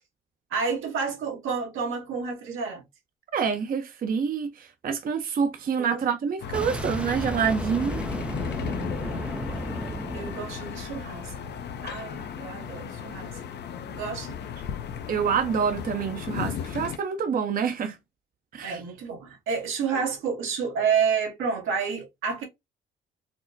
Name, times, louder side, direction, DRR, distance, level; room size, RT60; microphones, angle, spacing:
voice 1, 0.5-2.8 5.8-6.1 10.1-11.3 11.8-13.4 13.9-14.4 18.6-22.4, right 6 dB, 85° right, 1.4 m, -29 dB
voice 2, 3.3-8.1 15.1-18.0 18.5-18.8, right 6 dB, 45° right, 0.6 m, -27 dB
sound 1, 6.4-17.0, left 8 dB, 60° left, 0.6 m, -35 dB
Boom, 6.5-11.4, right 1 dB, 5° right, 0.4 m, -34 dB
4.2 x 2.1 x 2.6 m
cardioid pair, 90°, 20 cm